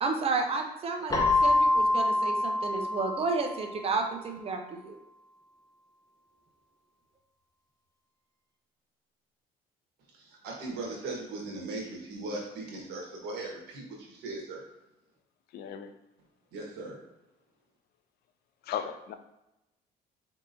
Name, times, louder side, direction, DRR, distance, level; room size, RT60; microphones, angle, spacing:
voice 1, 0.0-5.0, right 4 dB, 35° right, 3 dB, 0.7 m, -31 dB
Keyboard (musical), 1.1-3.8, left 2 dB, 20° left, 0.8 m, -26 dB
voice 2, 10.1-14.6 16.5-17.0, right 2 dB, 80° right, -1 dB, 1.4 m, -38 dB
voice 3, 15.5-16.0 18.6-19.1, left 9 dB, 70° left, 8 dB, 0.5 m, -36 dB
4.2 x 3.6 x 2.6 m, 0.91 s
cardioid pair, 110°, 17 cm